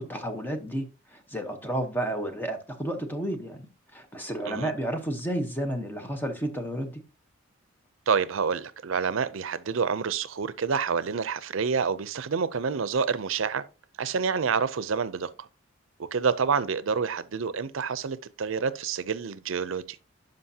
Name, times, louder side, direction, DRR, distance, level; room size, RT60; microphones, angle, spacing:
voice 1, 0.0-3.6 3.9-7.0, right 1 dB, 10° left, 1.0 m, -31 dB
voice 2, 8.1-13.6 14.0-15.5 16.1-20.0, right 5 dB, 75° right, 0.5 m, -28 dB
11.5 x 5.2 x 2.8 m
head